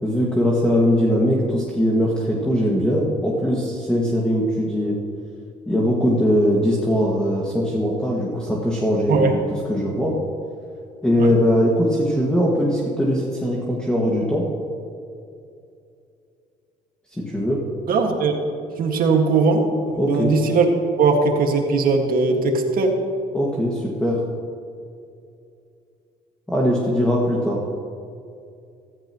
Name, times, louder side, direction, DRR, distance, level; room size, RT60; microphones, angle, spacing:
voice 1, 0.0-5.0 5.7-10.2 11.0-14.5 17.1-17.6 20.0-20.3 23.3-24.2 26.5-27.7, equal, 5° left, -4 dB, 1.9 m, -21 dB
voice 2, 17.9-18.3 18.8-19.7 20.1-20.7 21.0-22.9, right 4 dB, 60° right, 3 dB, 1.9 m, -19 dB
15.0 x 14.0 x 3.1 m, 2.5 s
cardioid pair, 110°, 17 cm